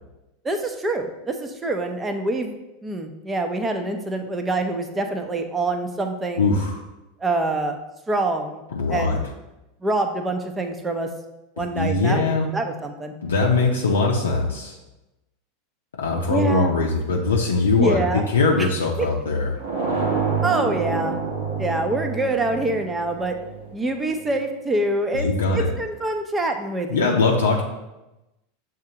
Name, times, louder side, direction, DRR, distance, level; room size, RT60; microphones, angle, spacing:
voice 1, 0.4-2.6 2.8-6.6 7.2-7.8 8.1-8.6 8.9-9.2 9.8-11.1 11.6-13.1 16.3-16.7 17.8-18.2 18.6-18.7 19.0-19.1 20.4-21.2 21.6-23.4 23.7-27.1, right 2 dB, 15° right, 5 dB, 0.6 m, -25 dB
voice 2, 6.4-6.8 8.7-9.2 11.7-12.5 13.2-14.8 16.0-19.5 25.1-25.7 26.9-27.6, left 3 dB, 80° left, -2 dB, 0.5 m, -21 dB
sound 1, 19.6-24.3, right 5 dB, 60° right, 1.0 m, -27 dB
7.2 x 2.4 x 2.8 m, 0.98 s
figure-of-eight pair, 85°, 0 cm